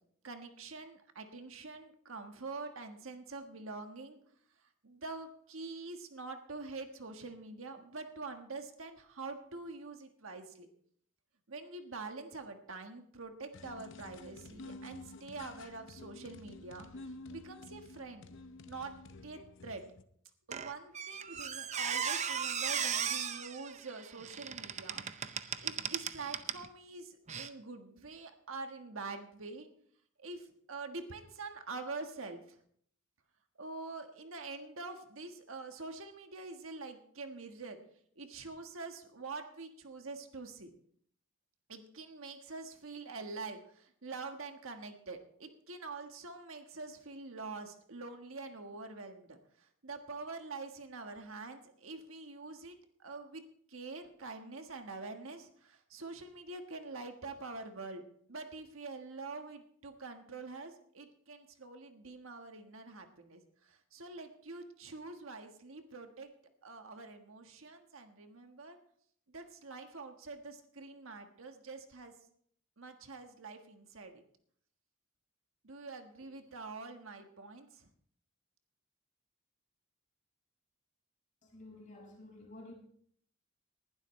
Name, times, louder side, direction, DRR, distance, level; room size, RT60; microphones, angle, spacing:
voice 1, 0.2-4.2 4.8-10.7 11.5-18.3 18.7-18.9 19.2-19.8 20.5-25.0 25.6-29.7 30.2-32.6 33.6-37.8 38.2-40.7 41.7-53.4 53.7-58.0 58.3-66.3 66.6-68.8 69.3-72.1 72.8-74.2 75.6-77.9, right 3 dB, 75° right, 1.4 m, -45 dB
sound 1, 13.5-20.0, left 2 dB, 60° left, 0.8 m, -50 dB
Squeak, 20.5-26.7 27.3-27.5, right 7 dB, 35° right, 0.6 m, -37 dB
voice 2, 81.4-82.7, left 2 dB, 40° left, 5.5 m, -51 dB
20.0 x 11.5 x 3.2 m
head